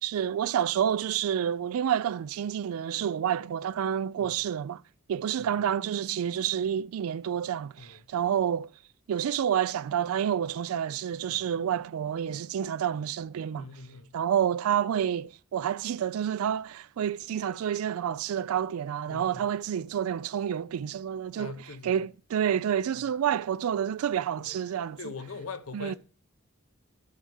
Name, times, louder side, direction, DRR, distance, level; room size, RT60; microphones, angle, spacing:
voice 1, 0.0-4.8 5.1-8.7 9.1-13.7 14.1-21.6 21.8-25.1 25.7-25.9, right 9 dB, 85° right, 0.3 m, -29 dB
voice 2, 13.6-14.2 19.1-19.5 21.4-22.0 23.0-23.1 24.4-24.6 25.0-26.0, left 4 dB, 80° left, 0.8 m, -42 dB
9.8 x 3.6 x 7.0 m
head